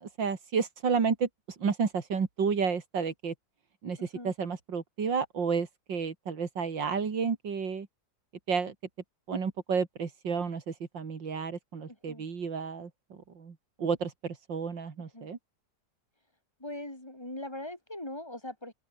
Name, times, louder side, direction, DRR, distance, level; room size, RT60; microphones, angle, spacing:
voice 1, 0.0-1.3 1.6-3.3 3.8-4.0 4.2-7.9 8.5-8.7 9.3-12.9 13.4-13.5 13.8-15.4, right 5 dB, 85° right, 3.2 m, -31 dB
voice 2, 4.0-4.3 11.9-12.3 15.0-15.3 16.6-18.7, left 1 dB, 15° left, 4.7 m, -41 dB
open air
omnidirectional pair, 2.0 m